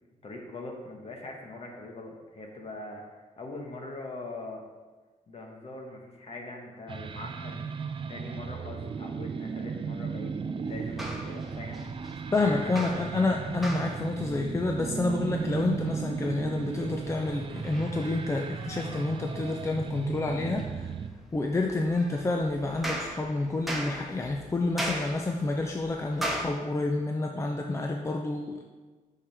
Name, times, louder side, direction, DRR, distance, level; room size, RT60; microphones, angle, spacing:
voice 1, 0.2-4.6 5.3-7.7 8.1-11.8 12.3-13.3, left 2 dB, 45° left, 1 dB, 1.4 m, -42 dB
sound 1, 6.9-21.1, right 5 dB, 40° right, 0.5 m, -35 dB
sound 2, 10.7-26.4, right 1 dB, ahead, 1.1 m, -40 dB
voice 2, 12.3-20.9 21.3-28.6, left 2 dB, 20° left, 2 dB, 0.5 m, -29 dB
8.8 x 6.5 x 3.5 m, 1.3 s
wide cardioid pair, 130°, 14 cm